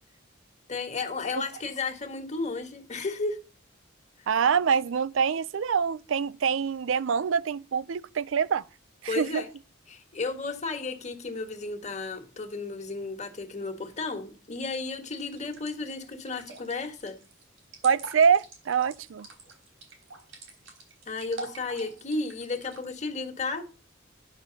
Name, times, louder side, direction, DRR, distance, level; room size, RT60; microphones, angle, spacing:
voice 1, 0.7-3.4 9.1-9.5 9.9-17.2 21.1-23.6, left 3 dB, 35° left, 1.6 m, -33 dB
voice 2, 4.3-8.6 9.0-9.4 17.8-19.3, right 6 dB, 70° right, 0.4 m, -25 dB
sound 1, 15.1-22.8, right 2 dB, 90° right, 3.7 m, -46 dB
10.5 x 6.3 x 4.0 m
head